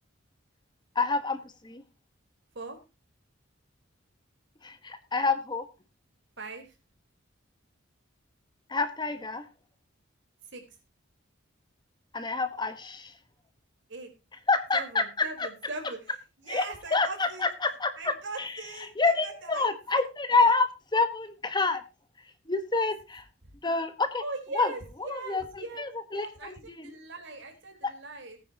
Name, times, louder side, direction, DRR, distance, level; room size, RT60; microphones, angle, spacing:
voice 1, 0.9-1.4 1.6-1.8 4.6-5.6 8.7-9.4 12.1-13.1 14.5-15.0 15.4-15.5 16.5-16.6 16.9-18.5 19.0-21.8 22.5-23.2 23.6-24.2 24.5-24.7 25.0-26.8, left 3 dB, 20° left, 10 dB, 1.2 m, -27 dB
voice 2, 6.4-6.7 10.5-10.6 13.9-14.1 14.7-16.1 16.4-17.5 18.0-19.7 23.4-23.5 24.2-25.8 26.1-28.4, right 3 dB, 60° right, 4 dB, 4.1 m, -40 dB
18.5 x 9.6 x 2.9 m, 0.27 s
head